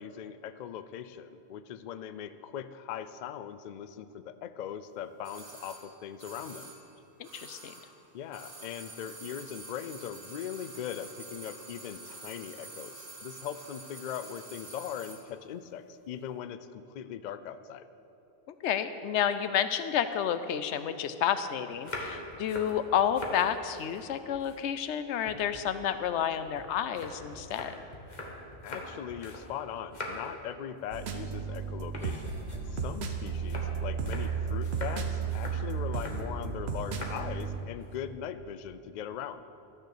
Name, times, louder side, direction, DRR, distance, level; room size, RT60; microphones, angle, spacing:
voice 1, 0.0-6.8 8.1-17.9 28.6-32.4 32.7-39.4, left 9 dB, 60° left, 12 dB, 0.5 m, -40 dB
sound 1, 5.2-8.0 8.3-15.3 15.5-15.6, right 3 dB, 35° right, 1.4 m, -47 dB
voice 2, 7.2-7.7 18.5-27.8, left 9 dB, 85° left, 11 dB, 0.9 m, -30 dB
sound 2, 21.7-23.4 23.8-25.0 25.3-29.5 29.7-30.4 30.8-31.1 31.4-31.5 31.9-36.2 36.8-37.2 37.6-37.9, left 2 dB, 40° left, 1.4 m, -43 dB
sound 3, 30.9-37.6, right 5 dB, 70° right, 1.1 m, -34 dB
13.0 x 6.5 x 6.7 m, 2.8 s
omnidirectional pair, 1.2 m